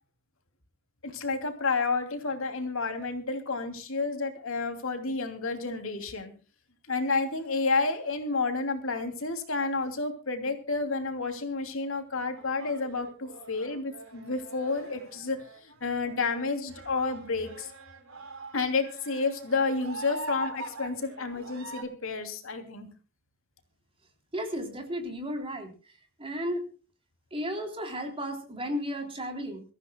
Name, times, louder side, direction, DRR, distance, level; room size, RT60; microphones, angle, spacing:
voice 1, 1.0-6.3 6.9-17.7 18.5-22.9, left 3 dB, 65° left, 6 dB, 2.9 m, -30 dB
sound 1, 12.4-21.8, right 2 dB, 75° right, 4.3 m, -44 dB
voice 2, 24.3-25.7 26.2-26.6 27.3-29.6, equal, 25° right, 4 dB, 3.7 m, -33 dB
26.0 x 14.5 x 2.3 m, 0.36 s
head